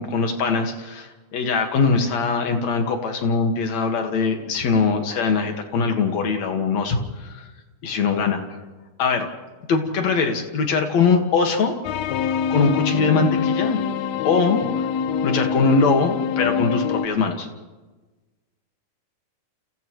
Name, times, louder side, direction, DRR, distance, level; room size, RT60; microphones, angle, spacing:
voice 1, 0.0-7.5 7.8-8.4 9.0-9.3 9.7-11.8 12.5-13.8 14.2-14.6 15.2-17.5, left 4 dB, 55° left, 4 dB, 2.8 m, -21 dB
sound 1, 11.8-17.1, left 7 dB, 90° left, 1.5 m, -24 dB
29.5 x 29.5 x 3.2 m, 1.2 s
omnidirectional pair, 4.1 m